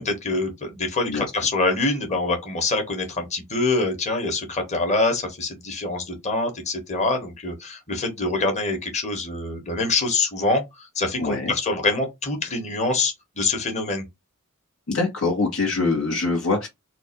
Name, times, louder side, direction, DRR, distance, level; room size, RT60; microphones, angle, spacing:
voice 1, 0.0-14.0, left 3 dB, 35° left, 1.4 m, -25 dB
voice 2, 11.2-11.5 14.9-16.7, left 3 dB, 75° left, 1.4 m, -24 dB
4.0 x 2.5 x 4.4 m
head